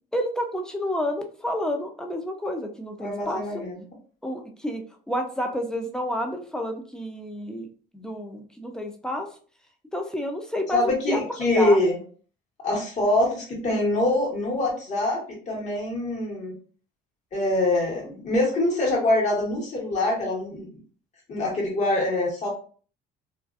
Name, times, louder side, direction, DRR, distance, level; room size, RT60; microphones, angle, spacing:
voice 1, 0.1-3.7 4.2-4.8 5.1-7.7 7.9-9.3 9.9-11.2 11.5-11.8, equal, 5° left, 3 dB, 0.5 m, -30 dB
voice 2, 3.0-3.8 10.7-12.0 12.6-16.5 17.3-20.8 21.3-22.5, left 2 dB, 45° left, -2 dB, 1.2 m, -24 dB
2.5 x 2.3 x 2.4 m, 0.42 s
cardioid pair, 110°, 17 cm